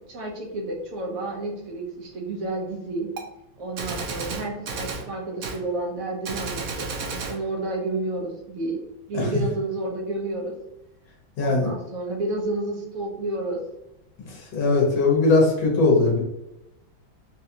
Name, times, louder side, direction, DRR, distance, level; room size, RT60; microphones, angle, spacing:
voice 1, 0.0-3.1 3.6-8.8 9.1-10.5 11.4-13.6, right 2 dB, 55° right, -1 dB, 1.1 m, -30 dB
Gunshot gunfire, 3.2-3.3 3.8-5.1 5.4-5.6 6.2-7.4, right 4 dB, 75° right, 0.8 m, -32 dB
voice 2, 11.4-11.7 14.3-16.2, left 3 dB, 75° left, -2 dB, 1.7 m, -20 dB
4.2 x 2.4 x 2.7 m, 0.89 s
omnidirectional pair, 2.2 m